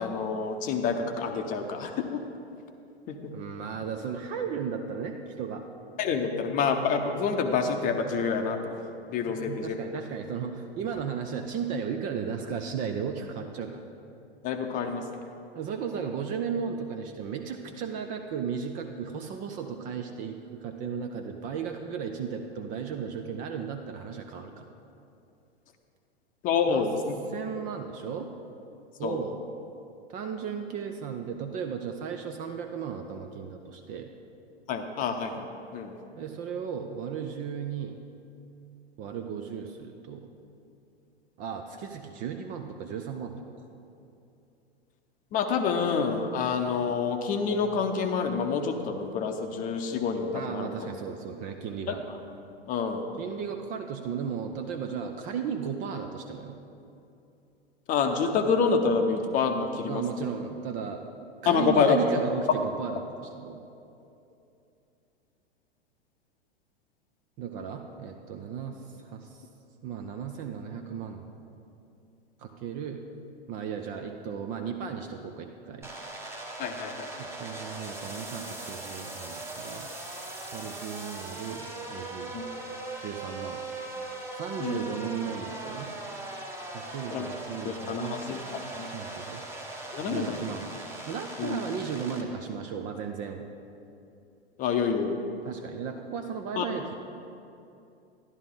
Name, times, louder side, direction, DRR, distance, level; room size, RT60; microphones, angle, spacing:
voice 1, 0.0-2.2 3.1-3.2 6.0-8.7 9.1-9.8 14.4-15.2 26.4-27.2 29.0-29.2 34.7-35.9 45.3-50.9 52.7-53.0 57.9-60.0 61.5-62.0 76.6-77.1 82.3-82.4 84.6-84.8 87.1-87.3 87.6-88.4 88.8-88.9 89.9-90.4 91.4-91.6 94.6-95.2 96.6-96.7, left 5 dB, 25° left, 6 dB, 0.8 m, -27 dB
voice 2, 3.3-5.6 9.2-13.8 15.5-24.7 26.7-26.8 27.3-28.3 29.0-29.4 30.1-34.1 36.2-38.0 39.0-40.3 41.4-43.5 50.3-52.0 53.2-56.6 59.9-61.0 61.4-63.6 67.4-69.5 69.8-71.2 72.4-73.0 73.5-75.9 77.2-79.9 80.5-82.3 83.0-83.6 84.3-85.9 86.7-88.2 88.9-89.4 90.1-90.7 91.1-93.4 95.4-96.9, right 7 dB, 25° right, 5 dB, 0.5 m, -35 dB
sound 1, 75.8-92.2, right 2 dB, 10° right, 1.0 m, -39 dB
12.0 x 11.0 x 3.8 m, 2.7 s
figure-of-eight pair, 100°, 32 cm